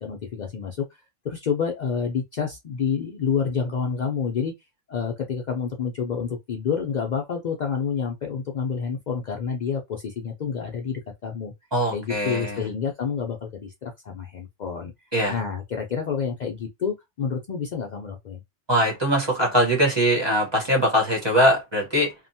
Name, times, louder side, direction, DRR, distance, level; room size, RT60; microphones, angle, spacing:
voice 1, 0.0-4.5 4.9-11.5 11.9-14.9 15.3-18.4, left 6 dB, 80° left, 0.4 m, -28 dB
voice 2, 11.7-12.6 15.1-15.4 18.7-22.1, equal, 25° right, 0.8 m, -21 dB
2.8 x 2.1 x 2.6 m
omnidirectional pair, 1.3 m